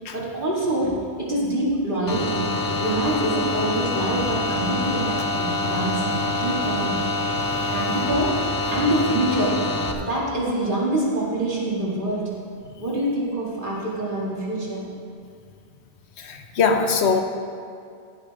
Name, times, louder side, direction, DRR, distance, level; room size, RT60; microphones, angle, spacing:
voice 1, 0.1-6.1 6.3-7.0 7.7-12.3 12.8-14.9, right 1 dB, 50° right, -5 dB, 2.3 m, -25 dB
sound 1, 2.1-9.9, left 2 dB, 25° left, 0.6 m, -25 dB
voice 2, 16.2-17.2, left 5 dB, 90° left, 5 dB, 1.1 m, -22 dB
15.5 x 8.5 x 3.5 m, 2.3 s
omnidirectional pair, 1.1 m